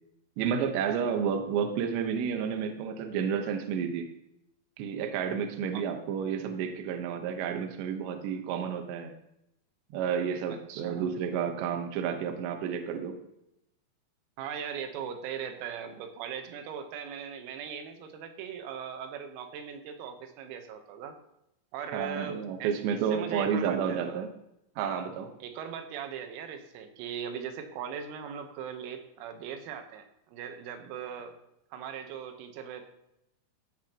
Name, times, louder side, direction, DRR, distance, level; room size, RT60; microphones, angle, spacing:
voice 1, 0.4-4.1 4.8-9.1 9.9-13.2 21.9-24.3 24.8-25.3, right 7 dB, 70° right, 5 dB, 3.0 m, -31 dB
voice 2, 10.5-11.1 14.4-21.2 21.7-22.7 23.1-24.2 25.4-31.4 31.7-32.8, right 7 dB, 90° right, 6 dB, 4.0 m, -39 dB
15.5 x 11.5 x 3.0 m, 0.82 s
omnidirectional pair, 6.0 m